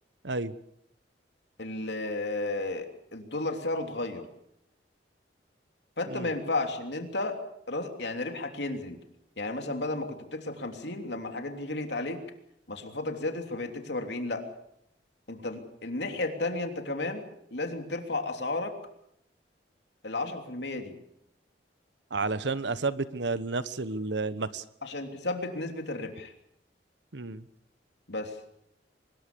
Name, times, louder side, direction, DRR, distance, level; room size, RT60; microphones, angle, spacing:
voice 1, 1.6-4.2 6.0-7.4 7.7-9.0 9.4-12.2 12.7-14.4 15.3-17.2 17.5-18.7 20.0-20.9 24.8-26.3 28.1-28.4, left 2 dB, 75° left, 5 dB, 3.2 m, -33 dB
voice 2, 22.1-24.6 27.1-27.4, right 3 dB, 85° right, 14 dB, 1.2 m, -31 dB
24.5 x 20.5 x 6.9 m, 0.76 s
head